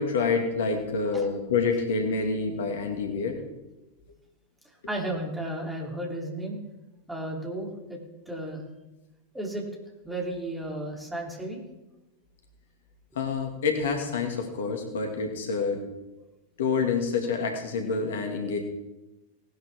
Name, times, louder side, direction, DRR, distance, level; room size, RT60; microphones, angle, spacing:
voice 1, 0.0-3.4 13.2-15.8 16.6-18.6, left 4 dB, 60° left, 4 dB, 2.0 m, -27 dB
voice 2, 4.9-6.6 7.1-8.0 8.3-8.6 9.3-9.6 10.0-11.6, right 1 dB, 5° right, -1 dB, 3.2 m, -33 dB
18.5 x 11.5 x 3.6 m, 1.0 s
figure-of-eight pair, 90°, 0 cm